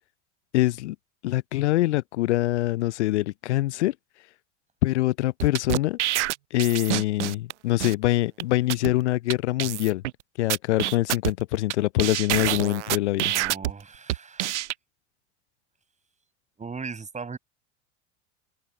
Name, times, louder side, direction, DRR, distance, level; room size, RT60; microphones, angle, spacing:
voice 1, 0.5-1.0 1.2-3.9 4.8-6.0 6.5-10.0 10.4-13.3, left 17 dB, 80° left, 0.5 m, -24 dB
sound 1, 5.4-7.5 7.8-7.9 8.4-8.5 8.7-8.9 9.3-9.4 9.6-10.1 10.5-11.7 12.0-13.7 14.1-14.7, right 15 dB, 85° right, 0.5 m, -27 dB
voice 2, 13.2-14.5 16.6-17.4, right 5 dB, 20° right, 6.9 m, -38 dB
hypercardioid pair, 85°, 34 cm